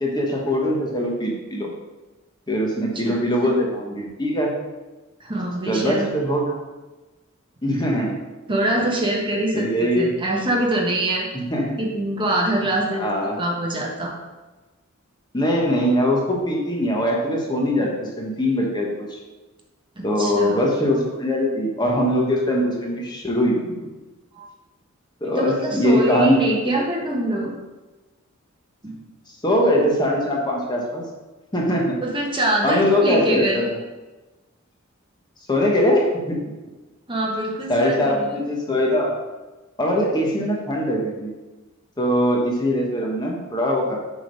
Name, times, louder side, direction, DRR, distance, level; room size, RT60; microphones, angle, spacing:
voice 1, 0.0-1.7 2.5-4.5 5.7-6.6 7.6-8.2 9.5-10.1 11.3-11.8 12.9-13.4 15.3-19.2 20.0-23.7 25.2-26.7 29.4-31.0 31.5-31.9 32.6-33.7 35.5-36.4 37.7-39.2 39.8-41.3 42.0-44.0, equal, 20° left, -1 dB, 1.2 m, -21 dB
voice 2, 5.2-6.1 8.5-11.3 11.8-13.1 13.4-14.1 20.0-20.7 24.4-24.5 25.2-27.5 28.8-29.0 32.0-33.6 37.1-38.4, right 1 dB, 25° right, -1 dB, 1.2 m, -24 dB
7.7 x 3.7 x 5.3 m, 1.2 s
head